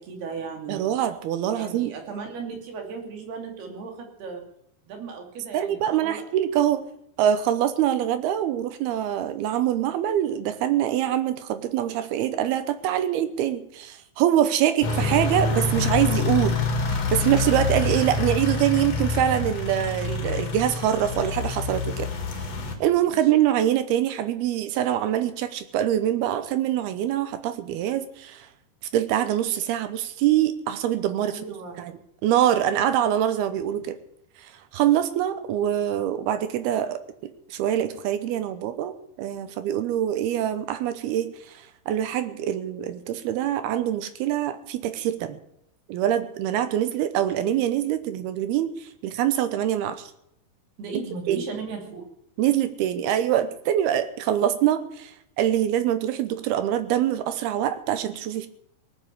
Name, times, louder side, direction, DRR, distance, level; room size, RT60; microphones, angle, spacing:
voice 1, 0.0-0.9 1.4-4.4 4.9-6.2 23.0-23.2 31.3-31.8 50.8-52.1, right 5 dB, 60° right, 3 dB, 4.6 m, -36 dB
voice 2, 0.7-1.9 5.5-6.8 7.2-16.6 16.9-22.1 22.4-22.5 22.8-28.5 28.9-31.4 31.8-31.9 32.2-34.0 34.4-45.4 45.9-50.1 51.3-51.4 52.4-58.5, right 11 dB, 80° right, 11 dB, 2.3 m, -24 dB
sound 1, 14.8-22.8, left 3 dB, 40° left, 2.6 m, -26 dB
18.5 x 9.1 x 8.4 m, 0.76 s
omnidirectional pair, 5.6 m